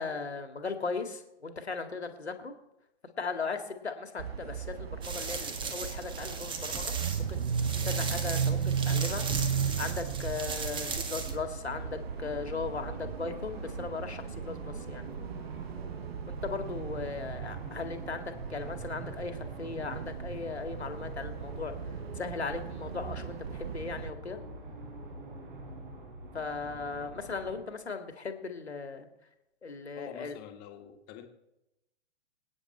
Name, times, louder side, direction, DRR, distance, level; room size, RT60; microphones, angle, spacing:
voice 1, 0.0-2.5 3.2-15.1 16.3-21.7 22.2-24.4 26.3-29.1 29.6-30.4, left 4 dB, 75° left, 7 dB, 2.2 m, -38 dB
sound 1, 4.2-24.1, right 7 dB, 65° right, 0.7 m, -36 dB
sound 2, 5.0-11.4, right 5 dB, 15° right, 1.5 m, -37 dB
sound 3, 11.7-27.6, right 2 dB, 50° right, 4.2 m, -45 dB
voice 2, 29.9-31.3, left 9 dB, 30° left, 5 dB, 1.9 m, -46 dB
25.5 x 9.5 x 4.4 m, 0.90 s
figure-of-eight pair, 110°, 33 cm